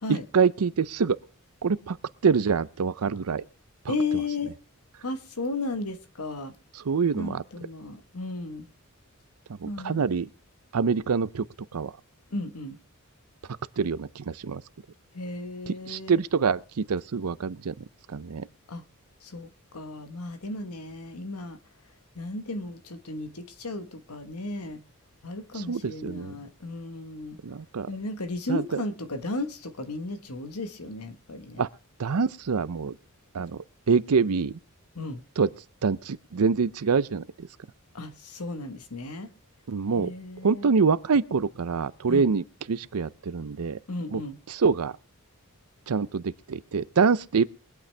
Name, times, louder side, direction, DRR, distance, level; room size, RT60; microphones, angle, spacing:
voice 1, 0.3-1.2 1.6-2.0 2.2-3.4 6.8-7.4 9.6-10.3 10.7-11.4 11.7-11.9 13.8-14.6 15.7-17.7 18.1-18.5 25.5-26.4 27.4-27.9 28.5-28.8 31.6-31.7 32.0-32.9 33.3-34.6 35.4-35.5 35.8-37.5 39.7-40.1 40.4-43.8 44.1-44.2 44.5-45.0 45.9-47.5, right 5 dB, 80° right, 0.6 m, -25 dB
voice 2, 3.9-4.5 5.0-6.5 7.1-8.7 9.6-10.0 12.3-12.8 15.1-16.2 18.7-18.8 19.2-21.6 22.1-24.8 25.2-27.4 27.9-31.7 34.9-35.2 37.9-39.3 39.9-40.7 42.1-42.3 43.9-44.4, left 2 dB, 85° left, 1.3 m, -34 dB
23.0 x 8.7 x 3.3 m
head